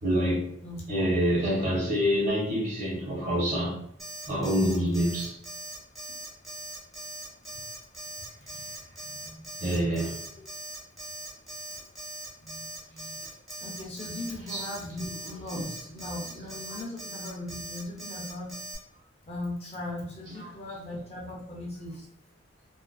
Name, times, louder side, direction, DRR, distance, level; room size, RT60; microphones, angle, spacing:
voice 1, 0.0-0.5 0.9-3.8 4.3-5.4 8.5-8.6 9.0-9.2 9.6-10.2 14.5-14.7 15.5-15.6 16.2-16.5 20.3-20.4 20.7-20.8, equal, 40° right, 0.8 m, -27 dB
voice 2, 0.6-1.1 9.2-9.5 12.4-12.7 12.9-13.2 13.6-18.5 19.3-22.1, left 1 dB, 30° left, 0.5 m, -38 dB
Alarm, 4.0-18.8, right 1 dB, ahead, 0.7 m, -40 dB
2.4 x 2.4 x 2.3 m
head